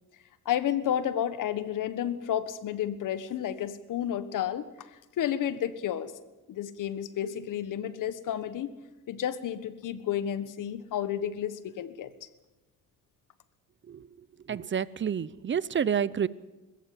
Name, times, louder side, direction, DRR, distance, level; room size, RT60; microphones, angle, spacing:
voice 1, 0.4-4.7 5.2-6.1 6.5-8.7 9.1-12.1, left 10 dB, 75° left, 14 dB, 1.5 m, -31 dB
voice 2, 14.5-16.3, right 8 dB, 35° right, 20 dB, 0.8 m, -29 dB
21.0 x 15.0 x 9.2 m, 1.1 s
cardioid pair, 95°, 32 cm